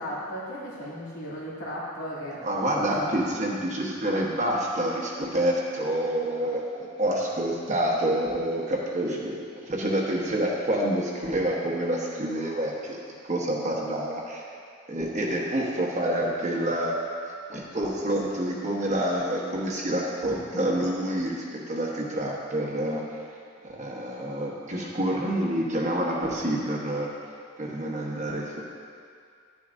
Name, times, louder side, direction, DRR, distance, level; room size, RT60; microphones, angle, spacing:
voice 1, 0.0-3.1, equal, 80° left, -7 dB, 2.4 m, -36 dB
voice 2, 2.4-13.0 13.2-14.4 14.9-16.9 17.5-23.2 23.6-27.1 27.6-28.6, right 1 dB, 35° right, -2 dB, 1.1 m, -28 dB
11.5 x 9.6 x 2.6 m, 2.3 s
head